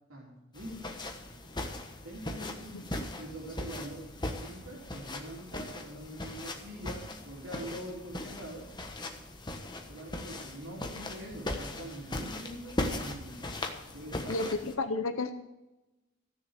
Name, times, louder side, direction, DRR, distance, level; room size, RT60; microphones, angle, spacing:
voice 1, 0.1-0.9 2.0-2.7 3.2-8.7 9.9-13.5 13.9-14.4, right 1 dB, 80° right, -4 dB, 3.4 m, -44 dB
sound 1, 0.5-14.8, left 1 dB, 20° left, 1.2 m, -39 dB
voice 2, 14.3-15.3, left 3 dB, 75° left, 8 dB, 0.8 m, -32 dB
15.0 x 6.9 x 6.6 m, 1.0 s
head